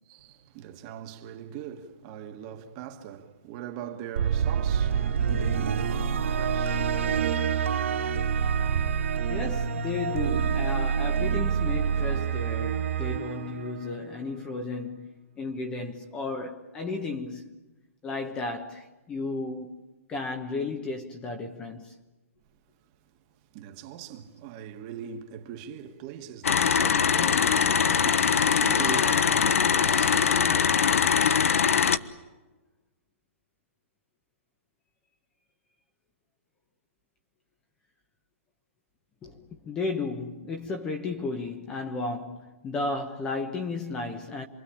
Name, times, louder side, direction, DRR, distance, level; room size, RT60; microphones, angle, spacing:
voice 1, 0.1-7.4 23.5-31.2, right 9 dB, 25° right, 1.8 m, -41 dB
sound 1, 4.2-14.3, right 7 dB, 65° right, 3.1 m, -27 dB
voice 2, 9.3-15.1 15.4-17.5 18.0-19.8 20.1-21.9 39.2-44.5, left 3 dB, 10° left, 1.2 m, -34 dB
sound 2, 26.4-32.0, left 7 dB, 75° left, 1.3 m, -22 dB
27.5 x 23.0 x 8.7 m
hypercardioid pair, 170°, 8 cm